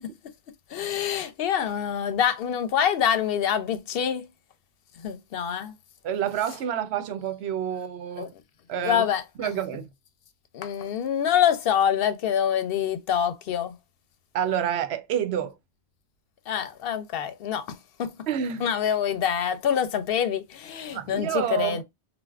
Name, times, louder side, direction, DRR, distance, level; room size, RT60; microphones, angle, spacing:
voice 1, 0.7-4.2 5.0-5.7 8.2-8.3 8.8-9.5 10.5-13.7 16.5-18.1 18.6-21.8, left 9 dB, 70° left, 0.7 m, -26 dB
voice 2, 6.0-8.3 8.7-9.0 9.4-9.9 14.3-15.5 18.3-18.7 20.9-21.8, right 9 dB, 85° right, 0.8 m, -28 dB
3.3 x 2.1 x 2.3 m
omnidirectional pair, 1.1 m